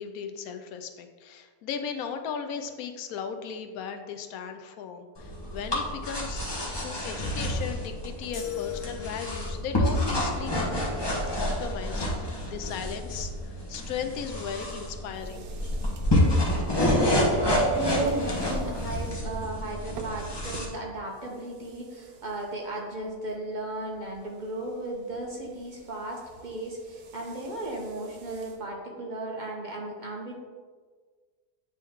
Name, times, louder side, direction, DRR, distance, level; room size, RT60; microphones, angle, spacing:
voice 1, 0.0-6.4 6.8-10.8 11.3-15.5, left 7 dB, 70° left, 7 dB, 0.9 m, -37 dB
sound 1, 5.2-20.7, left 1 dB, 20° left, 0.8 m, -28 dB
sound 2, 8.3-9.7, left 10 dB, 50° left, 1.4 m, -37 dB
sound 3, 15.1-28.6, right 4 dB, 75° right, 1.1 m, -41 dB
voice 2, 16.7-30.3, right 1 dB, 45° right, -1 dB, 0.6 m, -36 dB
9.0 x 3.0 x 3.5 m, 1.5 s
omnidirectional pair, 1.7 m